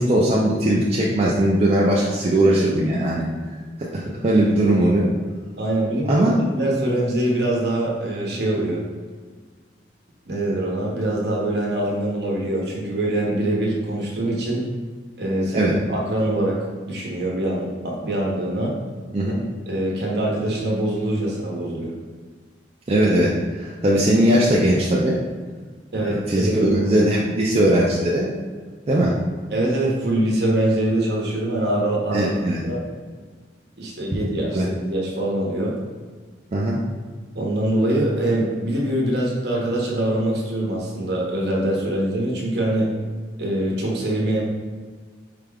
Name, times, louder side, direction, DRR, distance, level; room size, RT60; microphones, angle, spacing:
voice 1, 0.0-3.2 3.9-5.1 6.1-6.3 15.5-15.7 19.1-19.4 22.9-25.2 26.0-28.3 28.9-29.2 32.1-32.6 34.5-34.7 36.5-36.8, right 1 dB, 35° right, -5 dB, 0.4 m, -19 dB
voice 2, 5.6-8.8 10.3-14.6 15.2-16.6 16.9-18.7 19.7-22.0 25.9-26.8 29.5-32.3 32.7-32.8 33.8-35.8 37.3-42.9 43.4-44.4, right 1 dB, 60° right, -3 dB, 0.9 m, -23 dB
4.7 x 2.2 x 3.4 m, 1.5 s
head